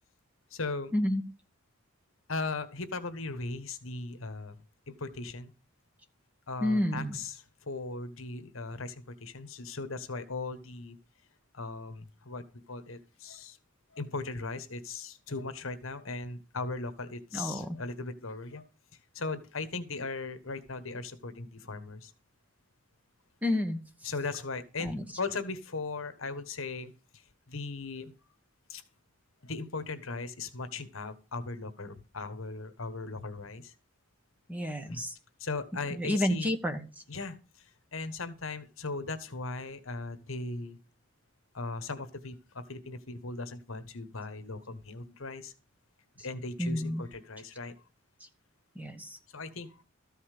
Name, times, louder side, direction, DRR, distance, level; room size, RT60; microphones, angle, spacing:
voice 1, 0.5-0.9 2.3-5.5 6.5-11.0 11.5-13.6 13.9-18.7 19.1-22.1 24.0-28.1 28.7-28.8 29.4-33.7 34.9-35.0 35.4-36.5 37.1-40.8 41.5-45.5 46.2-47.7 49.3-49.8, left 3 dB, 70° left, 11 dB, 1.4 m, -38 dB
voice 2, 6.6-7.2 17.3-17.6 23.4-23.8 24.8-25.0 34.5-35.1 36.0-36.8 46.6-47.0 48.7-49.2, left 1 dB, 5° right, 6 dB, 1.3 m, -29 dB
13.5 x 5.6 x 6.6 m, 0.33 s
head